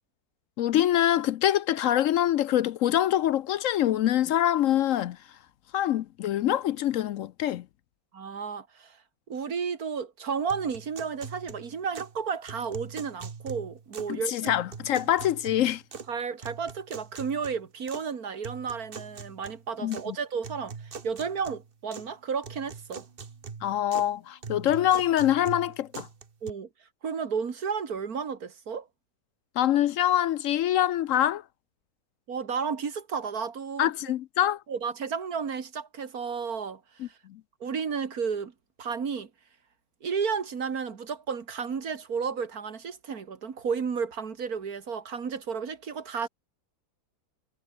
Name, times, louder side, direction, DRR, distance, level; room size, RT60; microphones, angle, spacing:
voice 1, 0.6-5.2 5.7-7.6 14.1-15.8 19.8-20.1 23.6-26.1 29.6-31.4 33.8-34.6 37.3-37.4, left 12 dB, 70° left, 0.9 m, -25 dB
voice 2, 8.1-9.0 9.3-14.5 16.1-23.1 26.4-26.7 27.0-28.9 32.3-33.9 34.7-36.8 37.1-37.2 37.6-38.5 38.8-39.3 40.0-46.3, right 6 dB, 75° right, 2.3 m, -32 dB
sound 1, 10.5-12.2 12.5-14.2 14.5-16.1 16.4-18.1 18.4-20.1 20.4-22.1 22.4-24.1 24.4-26.5, right 5 dB, 40° right, 1.5 m, -42 dB
omnidirectional pair, 1.6 m